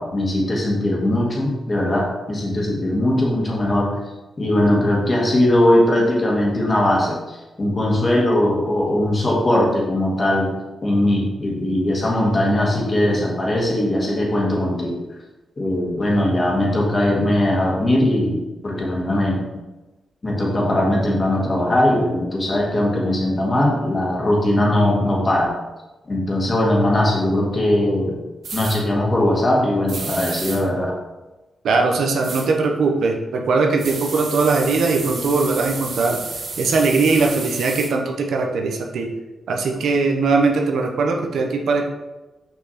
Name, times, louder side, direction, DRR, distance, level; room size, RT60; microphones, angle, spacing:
voice 1, 0.0-3.9 4.4-10.5 10.8-15.0 15.6-19.4 20.2-25.5 26.1-28.2 28.5-30.9, left 1 dB, 30° left, -2 dB, 1.9 m, -20 dB
sound 1, 28.4-28.8 29.9-30.6 32.2-32.5 33.8-37.9, right 4 dB, 65° right, 1.5 m, -31 dB
voice 2, 31.6-36.2 36.6-39.1 39.5-41.9, right 4 dB, 85° right, 2 dB, 1.0 m, -20 dB
6.1 x 5.7 x 4.3 m, 1.1 s
wide cardioid pair, 125°, 0 cm